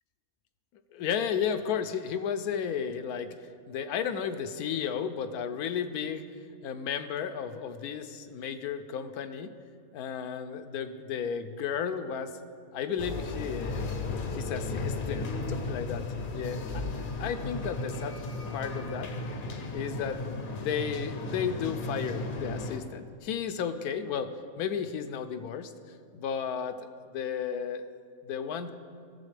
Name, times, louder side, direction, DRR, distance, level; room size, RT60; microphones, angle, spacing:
voice 1, 0.9-3.3 3.7-6.2 6.6-9.5 9.9-12.3 12.7-13.9 14.3-16.0 16.3-16.8 17.2-18.3 18.5-19.1 19.7-20.2 20.6-24.3 24.6-25.7 26.1-26.8 27.1-28.0 28.3-28.7, left 7 dB, 80° left, 10 dB, 1.1 m, -33 dB
sound 1, 13.0-22.8, left 3 dB, 50° left, 0.7 m, -35 dB
15.5 x 6.9 x 3.3 m, 2.3 s
omnidirectional pair, 1.6 m